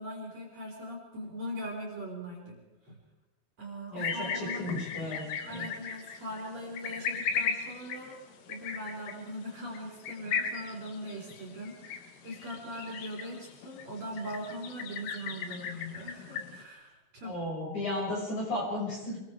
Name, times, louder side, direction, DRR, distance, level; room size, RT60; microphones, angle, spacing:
voice 1, 0.0-2.6 2.8-3.0 3.6-4.7 5.5-8.2 8.5-11.9 12.2-17.4, equal, 35° right, -3 dB, 5.6 m, -40 dB
voice 2, 3.9-5.7 17.2-19.2, left 1 dB, 40° left, -3 dB, 7.5 m, -35 dB
sound 1, 4.0-16.6, left 6 dB, 60° left, 2.8 m, -37 dB
27.0 x 22.5 x 4.9 m, 0.98 s
omnidirectional pair, 5.4 m